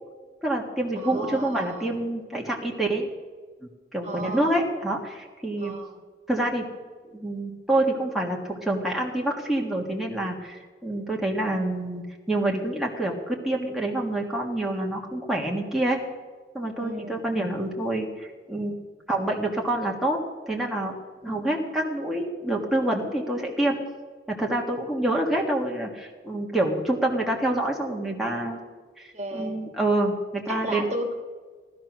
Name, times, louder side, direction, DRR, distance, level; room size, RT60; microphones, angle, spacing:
voice 1, 0.4-3.1 3.9-5.7 6.3-6.7 7.0-16.0 16.5-18.8 19.1-20.2 20.5-20.9 21.2-23.8 24.3-28.6 29.0-30.8, right 1 dB, ahead, -2 dB, 1.6 m, -27 dB
voice 2, 0.9-2.0 4.0-4.6 5.6-6.0 16.8-17.2 21.2-21.6 29.1-29.6 30.5-31.1, right 1 dB, 40° right, 4 dB, 2.0 m, -35 dB
17.5 x 12.5 x 6.1 m, 1.4 s
head